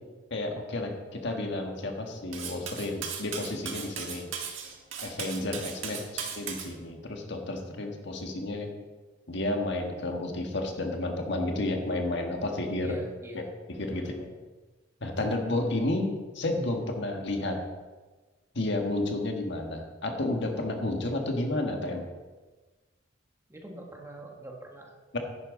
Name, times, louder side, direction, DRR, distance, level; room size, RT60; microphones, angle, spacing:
voice 1, 0.3-4.3 5.0-8.7 9.3-12.9 13.3-13.4 13.7-14.2 15.0-17.6 18.5-22.0 25.1-25.2, left 2 dB, 65° left, 3 dB, 1.6 m, -31 dB
Cutlery silverware, 2.3-6.7, right 7 dB, 90° right, 1.6 m, -37 dB
voice 2, 5.8-6.2 12.8-13.5 14.0-14.2 23.5-25.0, right 1 dB, 15° right, 0 dB, 1.4 m, -44 dB
10.5 x 10.0 x 3.9 m, 1.3 s
head